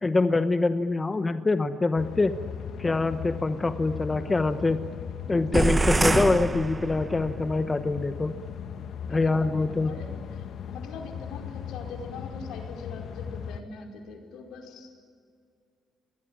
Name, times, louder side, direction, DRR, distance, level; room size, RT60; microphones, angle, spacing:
voice 1, 0.0-2.3 2.8-4.8 5.3-8.3 9.1-9.9, left 3 dB, 25° left, 9 dB, 1.1 m, -25 dB
sound 1, 2.0-13.6, left 8 dB, 70° left, 1.4 m, -38 dB
sound 2, 5.5-7.4, right 2 dB, 20° right, 1.1 m, -25 dB
voice 2, 9.1-14.9, left 4 dB, 85° left, 2 dB, 5.0 m, -43 dB
28.0 x 20.5 x 8.9 m, 2.2 s
cardioid pair, 90°, 0 cm